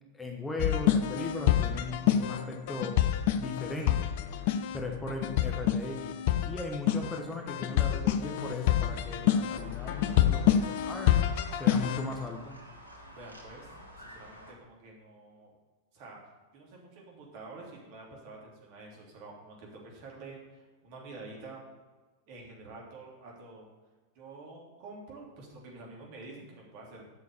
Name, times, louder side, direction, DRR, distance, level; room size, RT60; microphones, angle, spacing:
voice 1, 0.1-3.0 3.3-4.0 4.7-6.2 6.4-11.2 11.6-12.6, left 2 dB, 10° left, 2 dB, 1.2 m, -38 dB
sound 1, 0.6-12.1, left 10 dB, 50° left, 0.6 m, -27 dB
sound 2, 9.5-14.5, equal, 80° left, 1.8 m, -49 dB
voice 2, 13.1-13.7 14.0-15.5 15.9-16.2 16.5-21.7 22.3-23.7 24.1-27.1, right 3 dB, 45° right, -2 dB, 3.1 m, -48 dB
8.5 x 6.3 x 6.9 m, 1.3 s
figure-of-eight pair, 90°, 0 cm